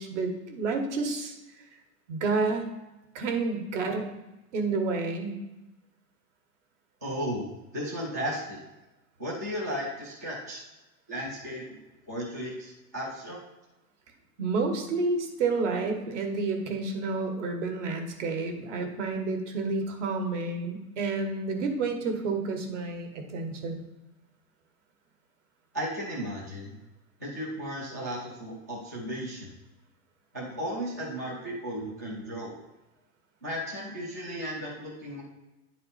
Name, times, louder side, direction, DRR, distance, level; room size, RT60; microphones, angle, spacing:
voice 1, 0.0-1.3 2.1-2.6 3.1-4.1 4.5-5.3 14.4-23.8, right 3 dB, 50° right, 4 dB, 1.4 m, -30 dB
voice 2, 7.0-8.6 9.2-10.6 11.1-11.8 12.1-13.4 25.7-26.8 27.2-29.5 30.3-32.6 33.4-35.2, equal, 15° right, -5 dB, 0.3 m, -35 dB
10.5 x 4.2 x 4.1 m, 1.0 s
supercardioid pair, 165°, 46 cm